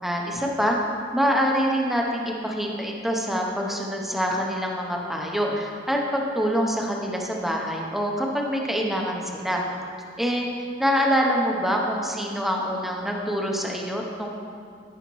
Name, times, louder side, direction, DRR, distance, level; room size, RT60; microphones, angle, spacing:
voice 1, 0.0-0.8 1.1-9.6 10.2-10.5 10.8-14.3, equal, ahead, -1 dB, 0.7 m, -25 dB
13.0 x 5.7 x 3.1 m, 2.3 s
head